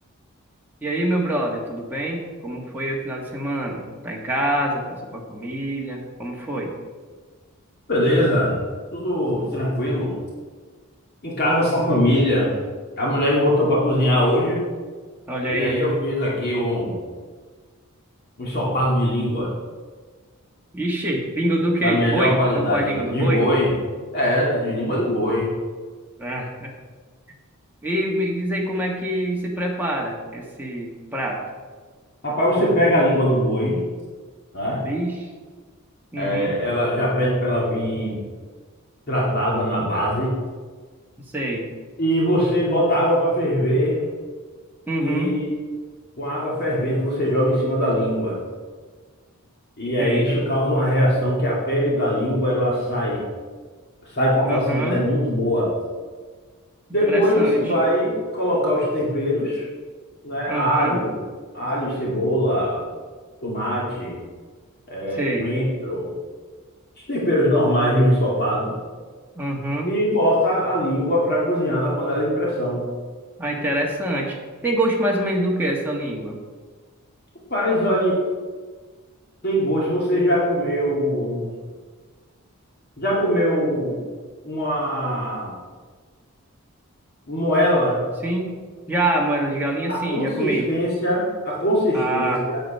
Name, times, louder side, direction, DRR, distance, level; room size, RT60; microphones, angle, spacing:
voice 1, 0.8-4.8 5.1-6.7 15.3-15.8 20.7-23.4 26.2-26.7 27.8-31.4 34.8-35.3 36.1-36.5 41.3-41.7 44.9-45.3 50.0-50.3 54.4-55.0 57.0-57.6 60.5-61.0 65.1-65.5 69.3-69.9 73.4-74.4 74.6-76.4 88.2-88.5 88.9-90.7 91.9-92.4, right 1 dB, 10° right, -2 dB, 1.5 m, -25 dB
voice 2, 7.9-8.6 8.9-10.2 11.2-12.5 13.0-14.6 15.5-17.0 18.4-19.5 21.8-23.7 24.1-25.5 32.2-33.8 34.5-34.8 36.2-38.2 39.1-40.4 42.0-44.0 45.0-45.4 46.2-48.4 49.8-53.2 54.1-55.7 56.9-59.7 60.2-61.2 61.5-62.9 63.4-64.2 64.9-66.1 67.1-68.7 69.8-72.8 77.5-78.2 79.4-81.5 83.0-84.0 84.4-85.6 87.3-88.0 89.9-92.6, equal, 45° left, -5 dB, 2.5 m, -21 dB
8.8 x 7.7 x 5.6 m, 1.5 s
head